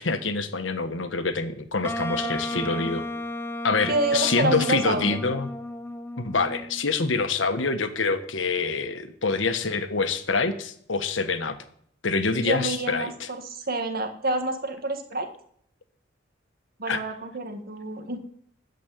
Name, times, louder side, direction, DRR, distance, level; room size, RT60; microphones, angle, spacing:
voice 1, 0.0-3.0 3.6-5.5 6.2-11.6 12.0-13.3 16.9-17.0, left 4 dB, 85° left, 9 dB, 1.4 m, -26 dB
Wind instrument woodwind instrument, 1.8-6.8, left 1 dB, 10° left, 0.7 m, -33 dB
voice 2, 2.5-2.9 3.9-5.2 12.3-15.3 16.8-18.2, right 2 dB, 50° right, 6 dB, 1.9 m, -28 dB
14.0 x 5.2 x 9.2 m, 0.65 s
head